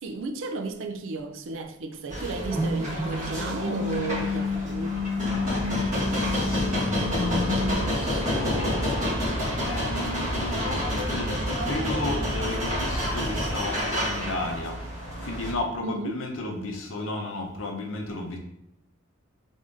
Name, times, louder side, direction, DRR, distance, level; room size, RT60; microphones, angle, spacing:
voice 1, 0.0-5.0 15.8-16.2, right 3 dB, 75° right, 0.4 m, -33 dB
sound 1, 2.1-15.5, equal, 40° right, 1.5 m, -29 dB
sound 2, 2.4-7.8, left 3 dB, 5° left, 1.2 m, -29 dB
voice 2, 5.2-14.8 15.2-18.4, left 2 dB, 80° left, 0.7 m, -34 dB
3.6 x 3.5 x 2.6 m
head